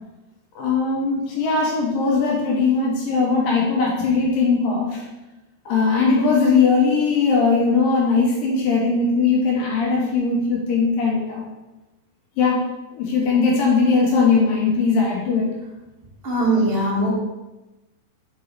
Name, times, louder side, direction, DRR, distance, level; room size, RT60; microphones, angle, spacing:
voice 1, 0.6-5.1 5.7-11.5 12.4-12.7 12.9-15.5, left 4 dB, 70° left, -3 dB, 2.4 m, -19 dB
voice 2, 16.2-17.1, right 1 dB, 85° right, -6 dB, 0.5 m, -20 dB
5.4 x 5.3 x 4.6 m, 1.0 s
omnidirectional pair, 4.9 m